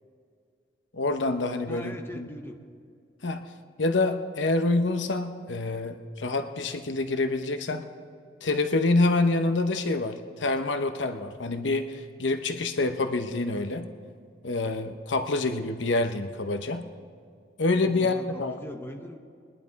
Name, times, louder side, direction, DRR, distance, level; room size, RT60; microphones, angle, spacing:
voice 1, 0.9-2.3 3.2-3.4 3.8-7.9 8.4-13.9 14.4-16.8 17.6-18.6, left 2 dB, 85° left, 8 dB, 0.9 m, -27 dB
voice 2, 1.7-2.6 17.7-19.2, left 1 dB, 15° left, 3 dB, 0.9 m, -41 dB
21.0 x 11.0 x 4.1 m, 2.2 s
head